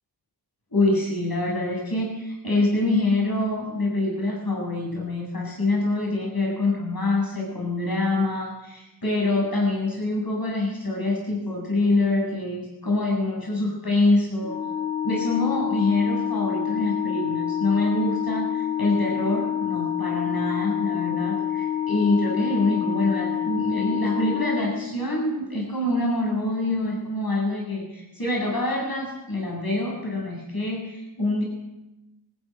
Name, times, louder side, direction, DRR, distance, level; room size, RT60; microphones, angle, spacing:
voice 1, 0.7-14.6 15.0-31.4, left 2 dB, 55° left, -2 dB, 7.7 m, -25 dB
Organ, 14.4-25.3, left 10 dB, 10° left, 2.3 m, -27 dB
21.5 x 16.0 x 9.2 m, 0.97 s
wide cardioid pair, 60°, 43 cm